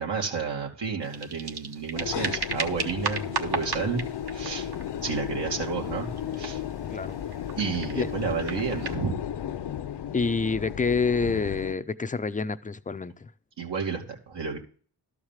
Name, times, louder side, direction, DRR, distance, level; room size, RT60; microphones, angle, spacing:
voice 1, 0.0-4.0 4.3-4.7 5.0-6.1 6.4-6.6 7.5-9.1 13.6-14.6, right 5 dB, 80° right, 2.5 m, -31 dB
sound 1, 1.0-9.0, right 5 dB, 65° right, 1.5 m, -36 dB
sound 2, 1.9-11.7, left 9 dB, 70° left, 0.7 m, -34 dB
voice 2, 10.1-13.3, left 4 dB, 20° left, 0.4 m, -27 dB
13.0 x 4.8 x 7.3 m
wide cardioid pair, 160°, 42 cm